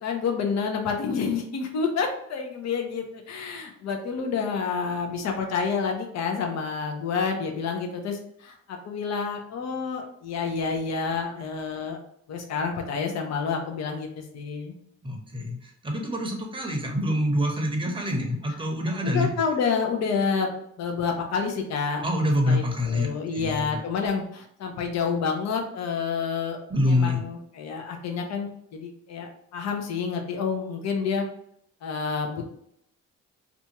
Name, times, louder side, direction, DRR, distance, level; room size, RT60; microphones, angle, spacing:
voice 1, 0.0-12.0 12.3-14.8 19.0-20.5 20.8-22.1 22.5-26.6 26.9-31.2 31.8-32.5, left 5 dB, 60° left, 3 dB, 0.7 m, -29 dB
voice 2, 15.0-19.3 22.0-23.8 26.7-27.2, left 1 dB, 15° right, 1 dB, 0.7 m, -26 dB
2.6 x 2.3 x 2.8 m, 0.70 s
cardioid pair, 90°, 30 cm